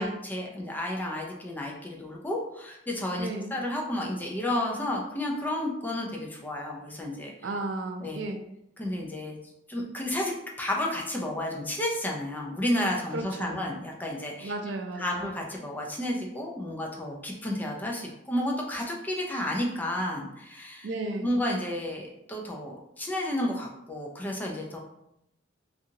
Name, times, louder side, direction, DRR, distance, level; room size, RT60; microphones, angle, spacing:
voice 1, 0.0-7.3 8.0-8.2 8.8-9.4 9.7-10.3 10.6-14.5 15.0-20.9 21.2-24.8, left 1 dB, 10° left, -1 dB, 0.4 m, -31 dB
voice 2, 3.2-3.6 7.4-8.4 13.1-13.6 14.4-15.3 20.8-21.3, right 2 dB, 70° right, 4 dB, 0.4 m, -34 dB
2.6 x 2.5 x 2.7 m, 0.81 s
head